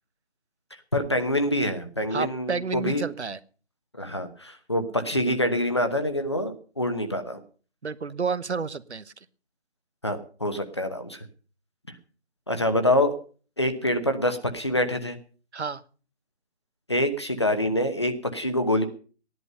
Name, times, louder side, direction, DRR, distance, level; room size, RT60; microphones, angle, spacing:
voice 1, 0.9-3.0 4.0-7.4 10.0-11.2 12.5-13.1 13.6-15.2 16.9-18.9, left 1 dB, 25° left, 8 dB, 1.0 m, -26 dB
voice 2, 2.1-3.4 7.8-9.1 15.5-15.8, right 5 dB, 85° right, 16 dB, 1.1 m, -30 dB
15.0 x 11.0 x 5.4 m, 0.40 s
figure-of-eight pair, 175°, 33 cm